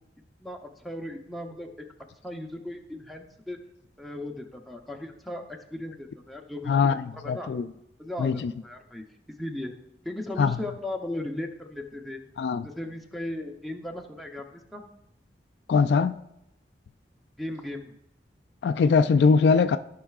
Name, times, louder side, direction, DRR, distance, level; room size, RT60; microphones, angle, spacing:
voice 1, 0.4-1.7 2.2-3.6 4.0-7.5 8.0-9.7 10.0-12.2 12.6-14.8 17.4-17.9, left 1 dB, ahead, 0.7 m, -37 dB
voice 2, 6.7-7.0 7.3-7.6 8.2-8.5 10.4-10.5 12.4-12.6 15.7-16.2 18.6-19.8, left 5 dB, 70° left, 0.3 m, -21 dB
15.0 x 5.6 x 2.4 m
head